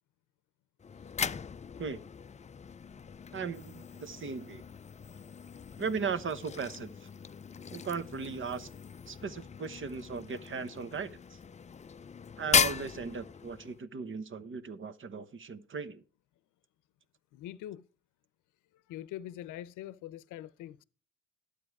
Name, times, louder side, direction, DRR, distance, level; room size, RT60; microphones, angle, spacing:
sound 1, 0.8-13.8, left 6 dB, 25° left, 0.4 m, -37 dB
voice 1, 3.3-4.6 5.8-7.1 7.7-8.7 9.1-11.2 12.4-16.0, right 5 dB, 40° right, 1.1 m, -37 dB
voice 2, 17.3-17.8 18.9-20.8, left 12 dB, 85° left, 0.7 m, -43 dB
12.0 x 8.4 x 4.7 m
cardioid pair, 90°, 30 cm